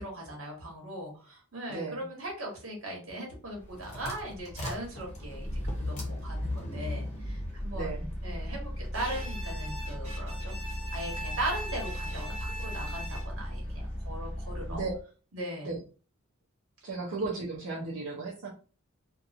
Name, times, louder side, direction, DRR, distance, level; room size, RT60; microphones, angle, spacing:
voice 1, 0.0-10.5 10.9-14.8 15.3-15.7 17.1-17.2, right 1 dB, 70° right, -1 dB, 1.2 m, -39 dB
voice 2, 1.7-2.0 7.7-8.1 14.7-14.9 15.6-15.8 16.8-18.5, right 3 dB, 90° right, -4 dB, 0.6 m, -35 dB
sound 1, 3.5-15.0, left 1 dB, 35° left, 0.7 m, -36 dB
Bowed string instrument, 8.9-13.5, equal, 30° right, 1.1 m, -41 dB
2.8 x 2.2 x 2.4 m, 0.38 s
head